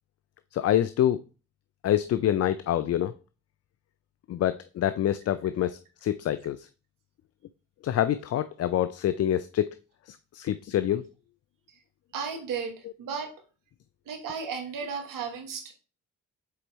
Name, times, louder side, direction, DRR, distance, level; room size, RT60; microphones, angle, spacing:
voice 1, 0.5-1.2 1.8-3.1 4.3-6.7 7.8-9.7 10.1-11.0, left 11 dB, 50° left, 0.4 m, -26 dB
voice 2, 12.1-13.4 14.0-15.7, right 6 dB, 80° right, 1.4 m, -35 dB
6.9 x 4.4 x 3.1 m
supercardioid pair, 50°, 32 cm